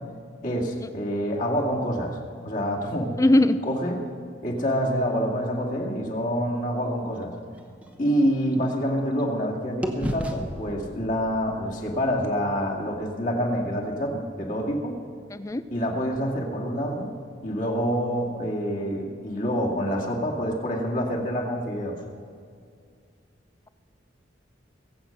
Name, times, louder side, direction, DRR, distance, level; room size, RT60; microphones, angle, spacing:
voice 1, 0.4-3.1 3.6-4.0 4.4-7.3 8.0-14.9 15.7-17.1 17.4-22.0, equal, 45° left, -2 dB, 2.2 m, -27 dB
voice 2, 3.2-3.6 15.3-15.7, left 1 dB, 15° left, 13 dB, 0.4 m, -20 dB
sound 1, 7.1-9.4 9.8-13.8, equal, 5° right, 0.9 m, -37 dB
21.5 x 8.2 x 5.8 m, 2.2 s
head